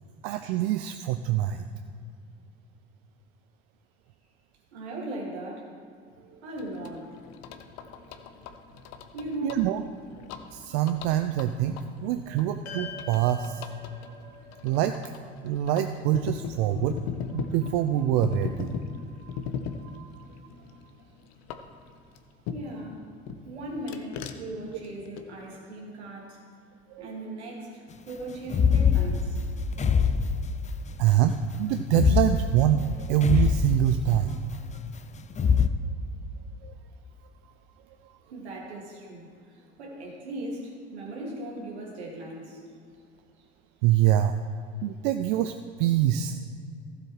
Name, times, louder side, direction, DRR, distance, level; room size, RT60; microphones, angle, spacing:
voice 1, 0.2-1.7 6.2-6.4 9.4-9.8 10.5-13.6 14.5-15.0 15.4-17.0 17.3-20.3 26.9-27.0 29.8-29.9 31.0-34.5 36.6-36.7 38.0-38.1 43.8-44.4 44.8-46.4, right 11 dB, 60° right, 8 dB, 0.5 m, -25 dB
voice 2, 4.7-5.7 6.4-7.2 9.1-9.6 22.5-23.0 23.4-26.4 27.0-29.4 38.3-42.6 43.4-43.5, right 1 dB, 80° right, -2 dB, 2.2 m, -38 dB
sound 1, 6.6-22.9 23.3-25.5, left 7 dB, 55° left, 0.9 m, -40 dB
sound 2, 12.6-17.1, left 4 dB, 75° left, 1.9 m, -45 dB
sound 3, 28.4-31.0 31.9-34.3 35.3-35.7, left 6 dB, 20° left, 0.5 m, -24 dB
15.0 x 7.7 x 3.2 m, 2.4 s
figure-of-eight pair, 60°, 33 cm